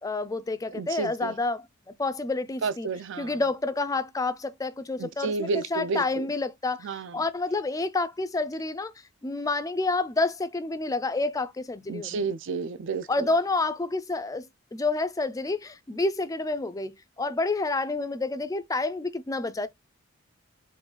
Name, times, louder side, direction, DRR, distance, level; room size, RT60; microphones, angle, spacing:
voice 1, 0.0-1.6 2.0-2.9 3.2-8.9 9.2-12.2 13.1-19.7, left 3 dB, 15° left, 0.4 m, -29 dB
voice 2, 0.7-1.3 2.6-3.4 5.0-6.3 6.8-7.2 11.9-13.3, right 4 dB, 60° right, 0.4 m, -31 dB
4.6 x 2.3 x 3.8 m
head